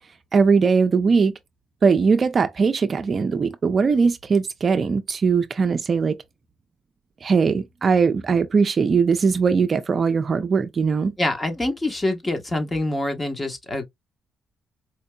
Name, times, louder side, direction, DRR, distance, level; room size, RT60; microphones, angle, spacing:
voice 1, 0.3-1.3 1.8-6.2 7.2-11.1, right 5 dB, 40° right, 0.4 m, -20 dB
voice 2, 11.2-13.8, left 1 dB, 20° left, 1.1 m, -25 dB
4.4 x 2.6 x 2.2 m
cardioid pair, 90°, 0 cm